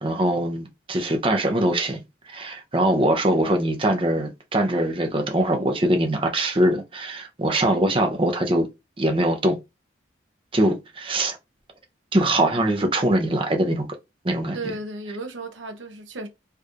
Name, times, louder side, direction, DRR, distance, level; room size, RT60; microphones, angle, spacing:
voice 1, 0.0-2.0 2.3-8.7 9.0-9.6 10.5-11.4 12.1-13.9 14.2-14.6, right 1 dB, 30° right, 0.7 m, -22 dB
voice 2, 14.5-16.3, right 2 dB, 85° right, 1.0 m, -35 dB
4.6 x 3.1 x 2.5 m
head